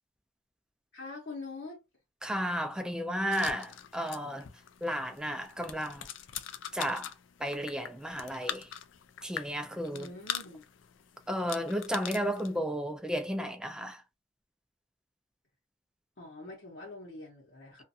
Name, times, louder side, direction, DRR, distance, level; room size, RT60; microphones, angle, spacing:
voice 1, 0.9-1.8 9.9-10.6 16.2-17.8, left 3 dB, 55° left, 0.9 m, -44 dB
voice 2, 2.2-4.5 4.8-6.1 6.7-7.1 7.4-8.7 9.2-10.1 11.3-14.0, equal, 5° right, 0.4 m, -33 dB
sound 1, 3.3-12.6, left 9 dB, 75° left, 0.4 m, -43 dB
2.5 x 2.3 x 2.6 m
head